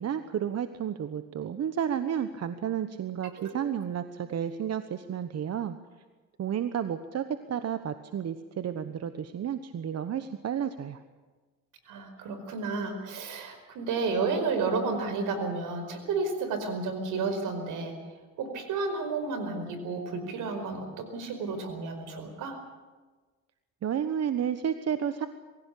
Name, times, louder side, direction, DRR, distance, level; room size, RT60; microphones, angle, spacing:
voice 1, 0.0-5.8 6.4-11.0 23.8-25.3, right 9 dB, 55° right, 10 dB, 1.2 m, -31 dB
voice 2, 11.8-17.9 18.4-22.6, right 4 dB, 75° right, 8 dB, 5.0 m, -31 dB
24.0 x 16.0 x 8.5 m, 1.3 s
supercardioid pair, 75°, 31 cm